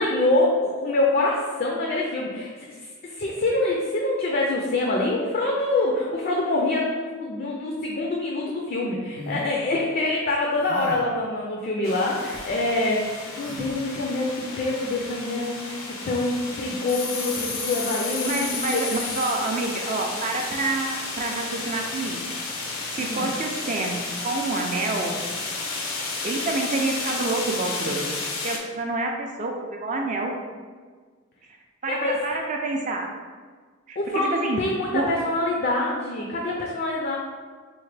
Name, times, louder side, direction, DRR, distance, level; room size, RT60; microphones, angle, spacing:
voice 1, 0.0-2.5 3.0-13.0 13.4-18.5 18.7-18.9 23.0-23.3 31.9-32.2 34.0-37.2, left 2 dB, 45° left, -1 dB, 0.4 m, -25 dB
sound 1, 9.1-9.5 10.6-11.1 12.1-12.5 13.4-13.8, equal, 80° right, 0.7 m, -38 dB
sound 2, 11.8-28.6, left 3 dB, 90° left, 0.6 m, -32 dB
voice 2, 18.2-22.2 22.9-25.1 26.2-28.1 28.4-30.3 31.8-33.1 33.9-34.6 34.9-35.1, right 2 dB, 40° right, 2 dB, 0.4 m, -28 dB
4.4 x 2.1 x 3.2 m, 1.5 s
head